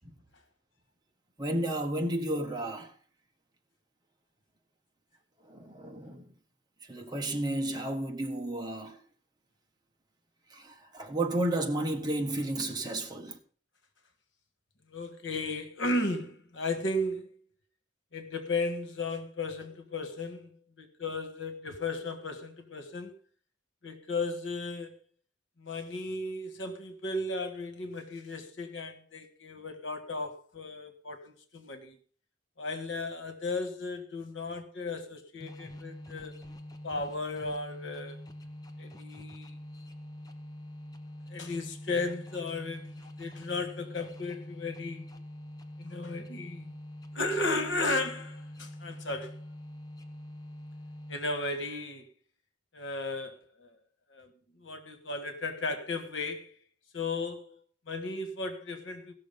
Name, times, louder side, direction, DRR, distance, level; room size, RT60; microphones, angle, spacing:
voice 1, 1.4-2.9 5.5-6.2 6.9-9.0 10.5-13.4, right 1 dB, 20° right, 1.4 m, -32 dB
voice 2, 14.9-17.3 18.1-20.5 20.8-23.1 23.8-25.0 25.6-32.0 32.6-36.4 36.8-38.2 38.8-39.5 41.3-45.1 45.8-46.7 47.1-49.4 51.1-52.1 52.7-53.7 54.1-54.3 54.6-56.5 56.9-59.1, left 2 dB, 85° left, 1.7 m, -35 dB
sound 1, 35.4-51.5, left 1 dB, 20° left, 0.9 m, -45 dB
16.0 x 6.4 x 5.3 m
head